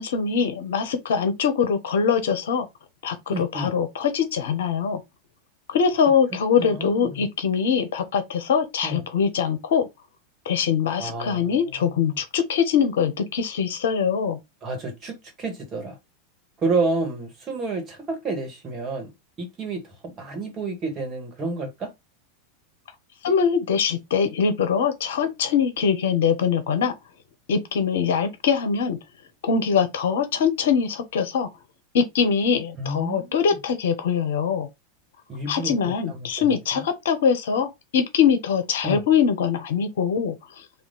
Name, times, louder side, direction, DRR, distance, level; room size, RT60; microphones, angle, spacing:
voice 1, 0.0-2.7 3.0-5.0 5.7-9.9 10.5-14.4 23.2-26.9 27.5-29.0 29.4-31.5 31.9-34.7 35.5-37.7 37.9-40.6, left 6 dB, 65° left, 0.7 m, -23 dB
voice 2, 3.3-3.7 6.6-7.2 8.8-9.0 11.0-12.2 14.6-16.0 16.6-19.1 19.4-21.9 32.8-33.4 35.3-36.8 38.8-39.0, right 3 dB, 30° right, 1.5 m, -30 dB
3.6 x 2.4 x 3.7 m
figure-of-eight pair, 90°, 0 cm